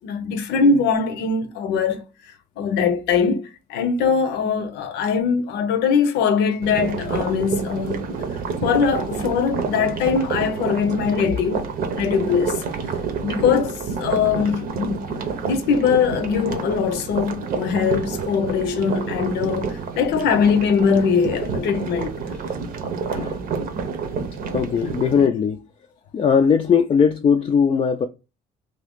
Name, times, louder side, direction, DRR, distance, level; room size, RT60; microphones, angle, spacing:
voice 1, 0.0-2.0 2.6-8.2 8.6-11.7 12.0-12.6 13.2-22.1, left 6 dB, 80° left, 0.7 m, -21 dB
sound 1, 6.6-25.3, right 5 dB, 60° right, 0.7 m, -29 dB
voice 2, 24.5-25.6 26.1-28.1, left 6 dB, 30° left, 0.4 m, -19 dB
2.7 x 2.6 x 3.5 m
cardioid pair, 110°, 17 cm